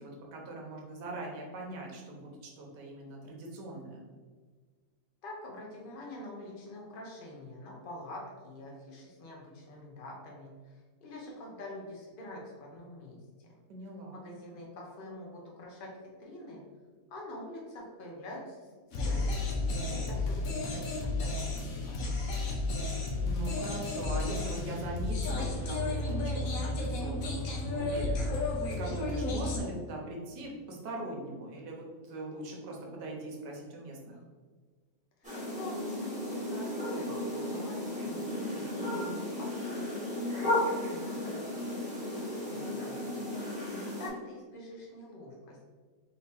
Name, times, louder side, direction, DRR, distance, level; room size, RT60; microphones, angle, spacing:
voice 1, 0.0-4.1 13.7-14.4 19.6-20.0 23.2-34.1 38.7-39.3 43.6-44.0, right 2 dB, 80° right, -1 dB, 1.5 m, -41 dB
voice 2, 5.2-13.5 14.1-16.6 17.1-19.4 19.9-22.3 35.2-38.9 39.4-43.2 43.6-45.6, left 1 dB, 45° left, -2 dB, 0.8 m, -46 dB
sound 1, 18.9-29.6, left 2 dB, 65° left, 1.0 m, -32 dB
sound 2, 35.2-44.1, left 1 dB, 5° right, 1.2 m, -34 dB
4.2 x 2.8 x 3.5 m, 1.5 s
omnidirectional pair, 1.8 m